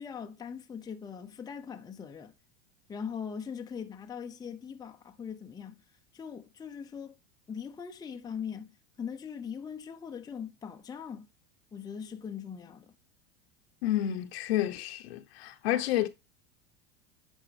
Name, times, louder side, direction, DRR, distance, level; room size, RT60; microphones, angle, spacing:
voice 1, 0.0-2.3 2.9-5.8 6.1-7.2 7.5-11.3 11.7-12.9, left 7 dB, 10° left, 0.6 m, -41 dB
voice 2, 13.8-16.1, left 13 dB, 75° left, 0.9 m, -30 dB
9.2 x 5.2 x 3.3 m
supercardioid pair, 115°, 31 cm